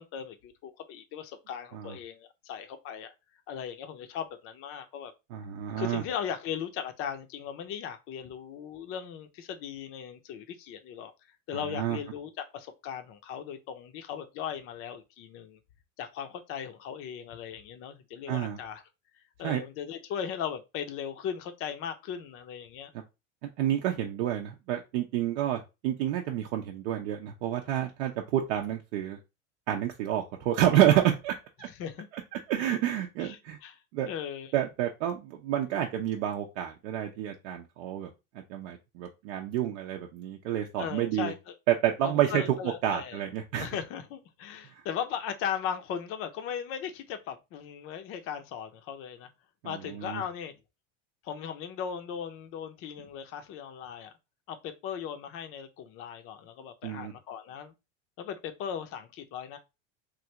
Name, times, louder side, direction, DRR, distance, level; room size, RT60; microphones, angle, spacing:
voice 1, 0.0-3.1 3.5-5.1 5.8-11.1 11.5-15.6 16.0-18.8 19.4-22.9 31.7-32.1 33.2-33.8 34.1-34.5 40.8-41.5 42.0-43.2 43.6-49.3 49.6-50.5 51.2-54.1 54.5-57.7 58.2-59.6, left 8 dB, 35° left, 0.5 m, -38 dB
voice 2, 5.3-6.0 11.5-12.0 18.3-18.6 19.4-19.6 23.4-29.2 29.7-31.7 32.3-33.6 33.9-34.1 34.5-38.1 38.5-41.3 41.7-42.4 42.8-43.7 49.6-50.2 56.8-57.1, right 11 dB, 75° right, 0.6 m, -29 dB
3.3 x 2.5 x 2.8 m
supercardioid pair, 140°, 38 cm